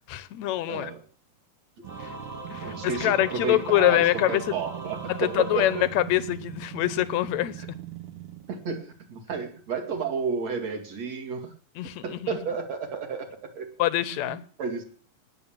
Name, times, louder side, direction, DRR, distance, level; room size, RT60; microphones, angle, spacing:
voice 1, 0.1-0.9 2.0-2.1 2.5-4.4 5.1-7.7 11.8-12.4 13.8-14.4, left 14 dB, 75° left, 1.7 m, -25 dB
voice 2, 0.7-1.0 2.6-5.9 8.5-11.5 12.0-13.7 14.2-14.8, right 5 dB, 50° right, 3.3 m, -32 dB
Singing / Musical instrument, 1.8-6.7, right 2 dB, 10° right, 1.1 m, -41 dB
sound 1, 1.8-8.6, right 12 dB, 75° right, 2.8 m, -41 dB
20.0 x 7.7 x 7.4 m
omnidirectional pair, 4.1 m